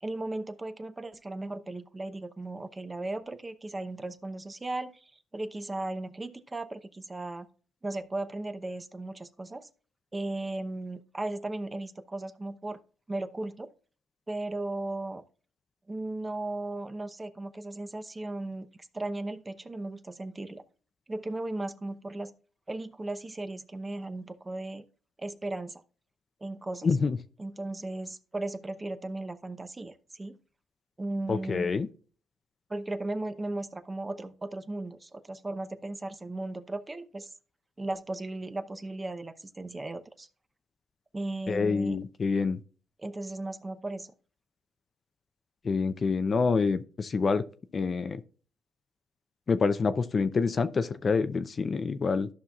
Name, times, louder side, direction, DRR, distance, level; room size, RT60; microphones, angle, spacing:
voice 1, 0.0-7.5 7.8-9.7 10.1-12.8 13.1-13.7 14.3-15.2 15.9-18.7 18.9-20.6 21.1-22.3 22.7-24.8 25.2-25.8 26.4-26.9 27.4-30.4 31.0-31.7 32.7-37.3 37.8-40.3 41.1-42.0 43.0-44.1, right 2 dB, 20° right, 0.8 m, -36 dB
voice 2, 26.8-27.2 31.3-31.9 41.5-42.6 45.6-47.4 47.7-48.2 49.5-52.3, left 4 dB, 40° left, 0.5 m, -27 dB
13.5 x 5.6 x 2.4 m
cardioid pair, 90°, 0 cm